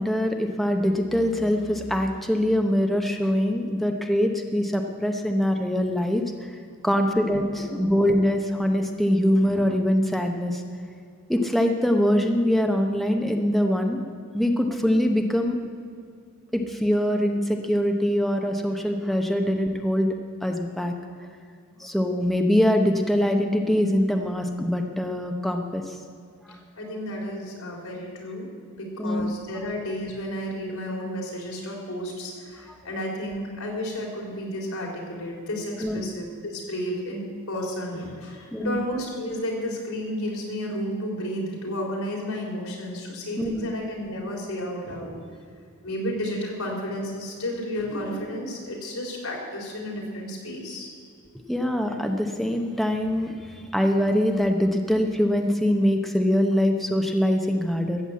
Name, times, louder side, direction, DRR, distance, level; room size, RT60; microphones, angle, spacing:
voice 1, 0.0-6.6 6.8-10.6 11.3-14.0 14.3-15.6 16.5-20.1 20.4-20.9 21.8-26.0 29.0-29.3 32.7-32.8 35.8-36.0 38.5-38.8 43.4-43.7 51.5-58.0, equal, ahead, 3 dB, 0.8 m, -23 dB
voice 2, 6.9-7.3 7.6-8.1 19.4-19.5 26.5-45.2 45.8-50.9, equal, 80° left, -2 dB, 3.7 m, -32 dB
14.0 x 7.9 x 8.4 m, 2.3 s
head